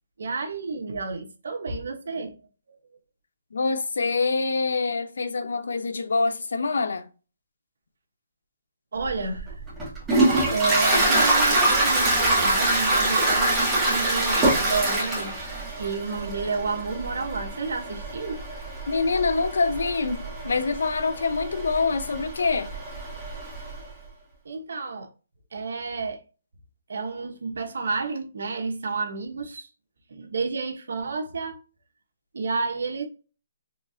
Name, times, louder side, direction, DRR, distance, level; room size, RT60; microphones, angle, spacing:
voice 1, 0.2-2.4 8.9-9.5 10.5-15.4 15.7-18.4 24.4-25.1 25.5-26.2 26.9-29.7 30.1-31.6 32.3-33.1, right 4 dB, 75° right, 1.1 m, -30 dB
voice 2, 3.5-7.1 18.9-22.7, left 4 dB, 80° left, 0.7 m, -25 dB
Toilet flush, 9.1-23.8, right 2 dB, 10° right, 1.7 m, -25 dB
4.5 x 3.2 x 2.8 m
hypercardioid pair, 165°, 0 cm